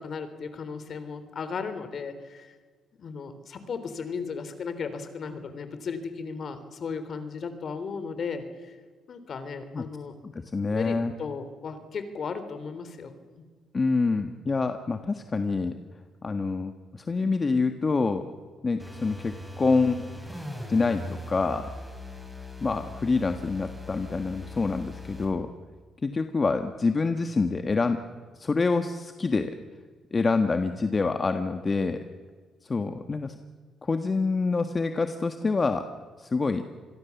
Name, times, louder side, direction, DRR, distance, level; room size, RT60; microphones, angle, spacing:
voice 1, 0.0-2.6 3.0-8.8 9.1-10.1 10.6-13.1, left 5 dB, 55° left, 10 dB, 3.5 m, -35 dB
voice 2, 10.2-11.1 13.7-15.7 16.2-18.3 18.6-20.0 20.7-21.6 22.6-25.5 26.0-28.0 28.3-29.5 30.1-32.0 32.6-33.3 33.8-35.8 36.2-36.6, left 4 dB, 30° left, 7 dB, 1.5 m, -26 dB
sound 1, 18.8-25.4, left 2 dB, 5° left, 5.8 m, -40 dB
27.0 x 21.5 x 7.2 m, 1.5 s
cardioid pair, 90°, 0 cm